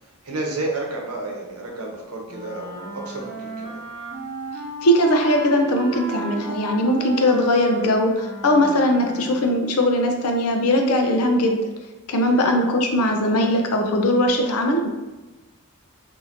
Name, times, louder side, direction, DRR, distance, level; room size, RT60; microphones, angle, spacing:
voice 1, 0.2-3.8 12.3-12.5, right 2 dB, 85° right, 0 dB, 0.8 m, -31 dB
sound 1, 2.3-9.6, right 3 dB, 55° right, 1.1 m, -34 dB
voice 2, 4.8-11.6 12.1-14.9, left 1 dB, 85° left, 3 dB, 0.5 m, -20 dB
2.7 x 2.5 x 4.2 m, 1.1 s
head